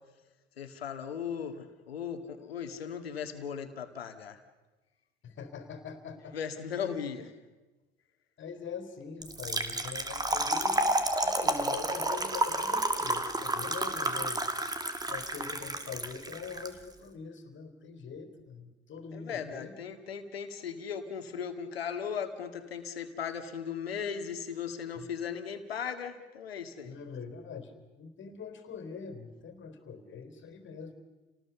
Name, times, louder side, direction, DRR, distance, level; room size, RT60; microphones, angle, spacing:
voice 1, 0.6-4.4 6.3-7.3 19.1-27.0, left 7 dB, 90° left, 9 dB, 1.9 m, -37 dB
voice 2, 5.2-6.4 6.9-7.3 8.4-14.5 15.1-19.7 25.0-25.1 26.8-30.9, left 5 dB, 40° left, 9 dB, 3.6 m, -43 dB
Trickle dribble / Fill (with liquid), 9.2-16.7, right 2 dB, 15° right, 2.3 m, -30 dB
29.5 x 19.0 x 6.9 m, 1.2 s
hypercardioid pair, 75°, 29 cm